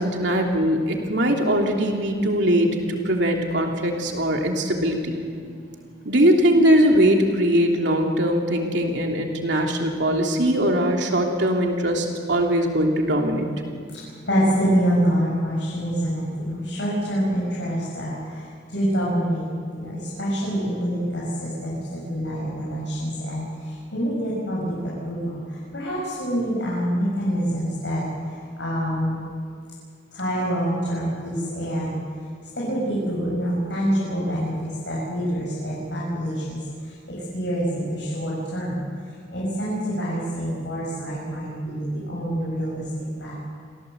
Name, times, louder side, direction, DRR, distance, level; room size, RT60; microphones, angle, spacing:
voice 1, 0.0-5.1 6.0-13.5, equal, 65° right, 1 dB, 3.1 m, -21 dB
voice 2, 14.3-18.1 18.7-19.5 19.8-21.8 22.1-23.4 23.9-24.7 25.1-25.4 25.7-28.0 28.6-29.1 30.2-31.9 32.6-34.5 34.9-36.6 37.3-38.7 39.3-42.8 43.2-43.3, equal, 65° left, -6 dB, 7.0 m, -25 dB
27.0 x 17.0 x 8.1 m, 2.2 s
head